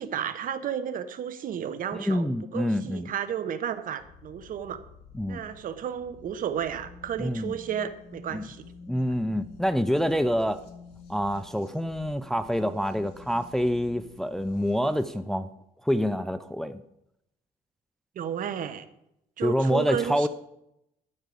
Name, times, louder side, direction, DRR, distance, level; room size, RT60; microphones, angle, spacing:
voice 1, 0.0-2.3 2.5-4.8 5.3-8.7 18.2-18.9 19.4-20.3, right 9 dB, 55° right, 12 dB, 1.0 m, -32 dB
voice 2, 1.9-3.1 5.1-5.4 7.2-7.5 8.3-8.4 8.9-10.6 11.1-15.5 15.8-16.8 19.4-20.3, equal, ahead, 11 dB, 0.5 m, -27 dB
sound 1, 4.0-15.1, left 4 dB, 80° left, 2.2 m, -49 dB
13.0 x 4.7 x 8.4 m, 0.81 s
cardioid pair, 110°, 17 cm